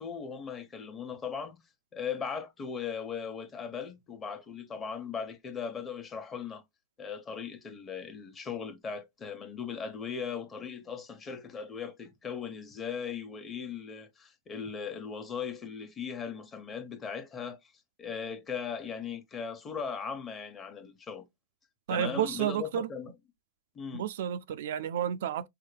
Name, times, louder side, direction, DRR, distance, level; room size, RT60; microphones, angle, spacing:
voice 1, 0.0-1.6 1.9-6.6 7.0-17.6 18.0-21.3 21.9-23.1 23.7-24.0, left 6 dB, 20° left, 1.1 m, -38 dB
voice 2, 21.9-22.9 23.9-25.5, right 10 dB, 75° right, 0.4 m, -31 dB
5.6 x 2.2 x 3.3 m
supercardioid pair, 130°, 0 cm